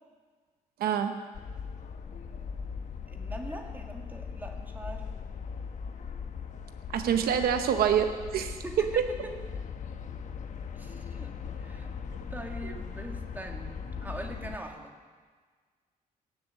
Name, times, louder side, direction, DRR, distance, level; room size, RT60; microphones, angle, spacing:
voice 1, 0.8-1.3 6.9-8.6 8.9-9.0 12.6-12.7, right 8 dB, 85° right, 7 dB, 0.9 m, -26 dB
sound 1, 1.3-14.6, left 6 dB, 55° left, 1.1 m, -39 dB
voice 2, 2.1-2.5 3.1-5.1 8.6-9.3 10.7-11.3 11.6-11.9 12.3-14.9, right 1 dB, 10° right, 2 dB, 1.8 m, -42 dB
17.5 x 7.6 x 7.4 m, 1.5 s
cardioid pair, 120°, 15 cm